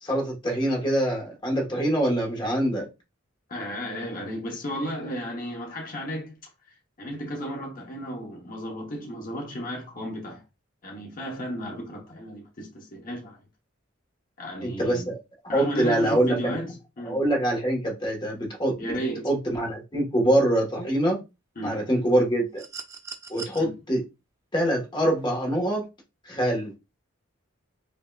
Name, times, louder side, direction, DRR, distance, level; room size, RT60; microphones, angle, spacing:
voice 1, 0.0-2.9 14.6-15.2 15.4-16.6 17.0-18.9 19.2-21.2 21.6-22.6 23.3-24.0 24.5-25.9 26.2-26.7, right 1 dB, 20° left, 1.3 m, -24 dB
voice 2, 3.5-6.4 7.0-10.4 10.8-13.4 14.4-15.1 15.5-17.2 18.8-19.3 21.6-21.8 23.6-23.7, equal, 40° left, 0.9 m, -34 dB
sound 1, 22.6-23.6 25.1-25.2, right 5 dB, 15° right, 0.5 m, -40 dB
5.3 x 2.7 x 2.4 m
head